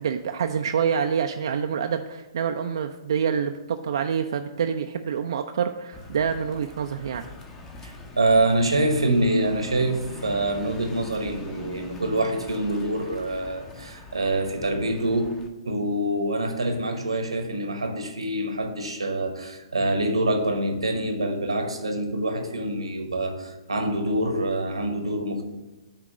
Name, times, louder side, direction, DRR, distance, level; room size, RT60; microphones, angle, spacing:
voice 1, 0.0-7.3, right 7 dB, 65° right, 5 dB, 0.4 m, -27 dB
sound 1, 5.9-15.5, left 2 dB, 15° left, 0.8 m, -43 dB
voice 2, 7.8-25.4, right 1 dB, 90° right, 5 dB, 1.1 m, -25 dB
8.5 x 2.9 x 6.2 m, 1.1 s
figure-of-eight pair, 125°, 3 cm